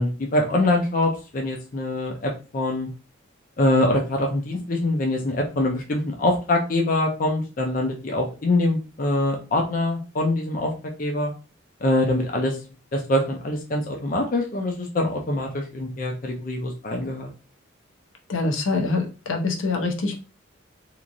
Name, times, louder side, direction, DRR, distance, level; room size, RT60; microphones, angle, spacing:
voice 1, 0.0-2.9 3.6-10.7 11.0-11.3 11.8-12.6 12.9-17.3, left 1 dB, 45° left, 1 dB, 0.5 m, -24 dB
voice 2, 18.3-20.2, left 3 dB, 80° left, 2 dB, 0.7 m, -25 dB
2.9 x 2.4 x 2.5 m, 0.33 s
head